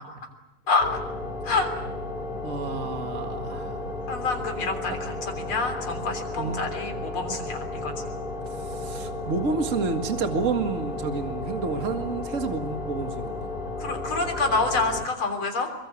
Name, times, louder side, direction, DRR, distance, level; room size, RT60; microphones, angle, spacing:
sound 1, 0.8-15.1, left 2 dB, 20° left, 2.5 m, -33 dB
voice 1, 2.4-3.8 4.9-5.0 6.4-6.6 8.5-13.5, right 4 dB, 35° right, 5 dB, 2.1 m, -30 dB
voice 2, 4.1-7.9 13.8-15.7, left 3 dB, 70° left, 5 dB, 4.2 m, -27 dB
23.5 x 23.5 x 8.4 m, 0.91 s
omnidirectional pair, 2.4 m